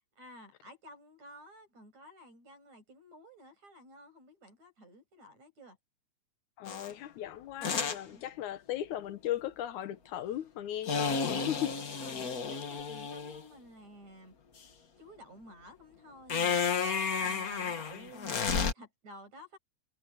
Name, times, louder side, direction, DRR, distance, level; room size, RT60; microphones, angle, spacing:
voice 1, 0.2-5.8 8.1-8.2 11.7-14.3 15.0-16.7 17.2-19.6, equal, 65° right, 7.5 m, -53 dB
voice 2, 6.6-11.7, left 12 dB, 80° left, 2.5 m, -37 dB
sound 1, 6.7-6.9 7.6-8.0 10.9-13.4 16.3-18.7, left 5 dB, 40° left, 1.4 m, -32 dB
omnidirectional pair, 3.4 m